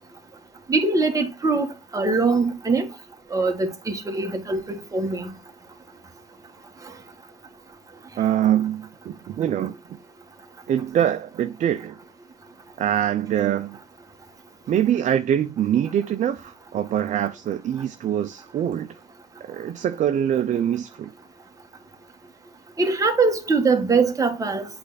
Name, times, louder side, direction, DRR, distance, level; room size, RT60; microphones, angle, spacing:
voice 1, 0.7-2.9 3.3-5.3 22.8-24.7, right 3 dB, 20° right, 1.4 m, -22 dB
voice 2, 8.2-9.8 10.7-12.0 12.8-13.8 14.7-18.9 19.4-21.1, right 10 dB, 45° right, 0.5 m, -24 dB
7.9 x 3.3 x 4.0 m
cardioid pair, 110°, 17 cm